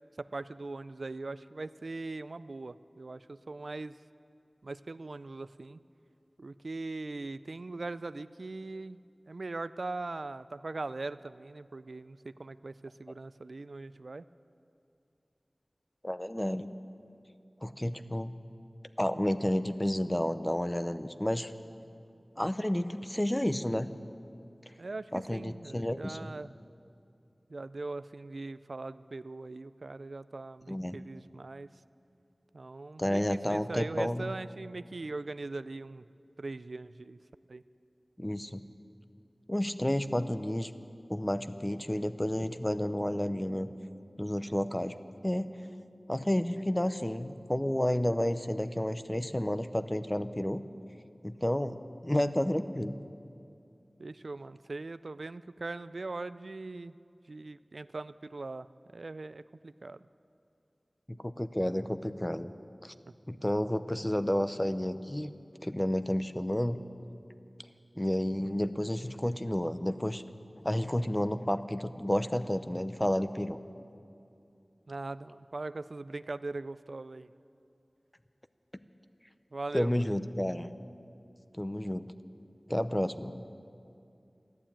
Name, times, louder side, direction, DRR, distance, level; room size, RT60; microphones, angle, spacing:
voice 1, 0.2-3.9 4.6-5.8 6.4-9.0 9.3-14.3 24.8-26.6 27.5-31.7 32.5-36.0 36.4-37.2 37.5-37.6 54.0-56.9 57.3-58.7 58.9-60.0 74.9-77.3 79.5-80.1, right 3 dB, 85° right, 14 dB, 0.3 m, -40 dB
voice 2, 16.0-16.7 17.6-18.3 19.0-21.5 22.4-23.9 25.1-26.3 30.7-31.0 33.0-34.3 38.2-38.6 39.5-40.7 41.1-43.7 44.2-44.9 45.2-45.6 46.1-50.6 51.2-53.0 61.1-62.5 62.8-62.9 63.3-65.3 65.6-66.8 68.0-70.2 70.6-73.6 79.7-80.7 81.6-82.1 82.7-83.4, left 1 dB, 20° left, 11 dB, 0.7 m, -31 dB
14.0 x 12.0 x 8.8 m, 2.5 s
wide cardioid pair, 45°, 0 cm